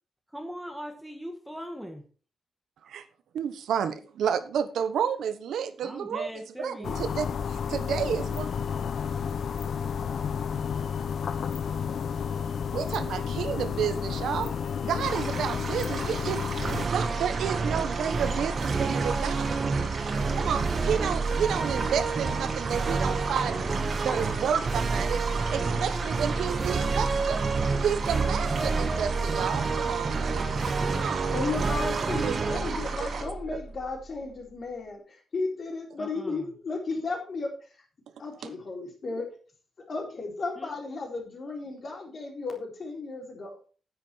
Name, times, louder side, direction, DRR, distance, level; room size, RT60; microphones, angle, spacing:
voice 1, 0.3-2.0 5.8-7.1 36.0-36.4 40.6-40.7, equal, 5° right, 5 dB, 1.6 m, -40 dB
voice 2, 3.3-8.5 12.7-14.5 14.8-16.4 16.8-19.5 20.4-23.7 24.0-27.4 27.8-30.5 30.9-32.6 33.0-33.1 33.5-33.6 38.4-38.5, right 8 dB, 85° right, 10 dB, 1.1 m, -31 dB
sound 1, 6.8-16.9, left 7 dB, 55° left, 0.8 m, -31 dB
sound 2, 15.0-33.2, right 4 dB, 45° right, 2.5 m, -36 dB
sound 3, 16.6-34.0, right 4 dB, 30° right, 1.1 m, -29 dB
voice 3, 31.3-37.5 38.2-39.4 39.9-43.6, left 3 dB, 40° left, 1 dB, 3.9 m, -34 dB
9.7 x 9.3 x 4.5 m, 0.37 s
wide cardioid pair, 165°, 0 cm